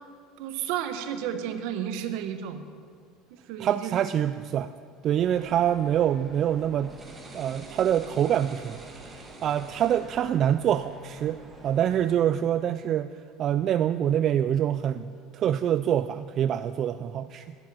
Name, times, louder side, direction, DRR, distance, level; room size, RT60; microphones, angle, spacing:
voice 1, 0.4-2.6 3.3-3.9, right 9 dB, 75° right, 9 dB, 1.0 m, -32 dB
voice 2, 3.6-4.7 5.0-6.9 7.3-13.1 13.4-15.1 15.3-17.5, right 10 dB, 45° right, 12 dB, 0.3 m, -25 dB
sound 1, 5.2-12.2, right 3 dB, 20° right, 2.0 m, -46 dB
11.0 x 7.5 x 9.0 m, 2.2 s
supercardioid pair, 110°, 0 cm